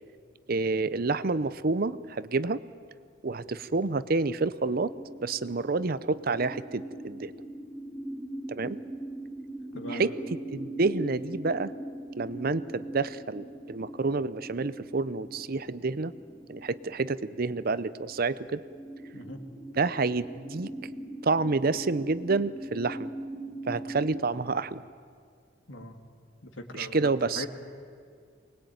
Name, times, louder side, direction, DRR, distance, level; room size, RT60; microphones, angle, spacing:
voice 1, 0.5-2.6 3.2-4.9 5.2-7.3 8.5-8.8 9.9-10.2 10.5-11.7 12.2-16.1 16.5-18.6 19.7-20.7 21.2-23.1 23.7-24.8 26.7-27.5, right 3 dB, 50° right, 16 dB, 0.6 m, -28 dB
sound 1, 4.8-24.2, right 1 dB, 5° left, 2.6 m, -41 dB
voice 2, 9.7-10.2 19.1-19.4 25.7-26.0 26.4-27.5, left 1 dB, 75° left, 5 dB, 2.4 m, -40 dB
24.0 x 20.5 x 9.2 m, 2.1 s
head